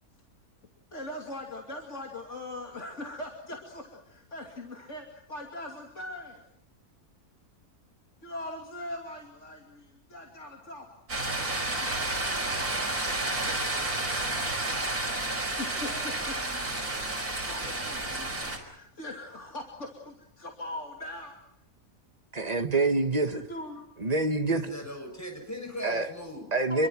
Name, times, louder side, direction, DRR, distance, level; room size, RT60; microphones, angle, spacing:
voice 1, 0.9-6.4 8.2-10.9 11.8-15.0 15.3-21.3 23.3-23.8 26.7-26.9, left 1 dB, 50° left, 1 dB, 3.0 m, -42 dB
sound 1, 11.1-18.6, right 2 dB, 70° right, 5.4 m, -31 dB
voice 2, 22.3-23.4 24.0-24.7 25.8-26.1 26.5-26.9, right 3 dB, 25° right, 7 dB, 1.5 m, -26 dB
voice 3, 24.5-26.6, left 1 dB, 10° left, 3 dB, 7.3 m, -39 dB
27.5 x 23.5 x 6.1 m, 0.75 s
omnidirectional pair, 1.6 m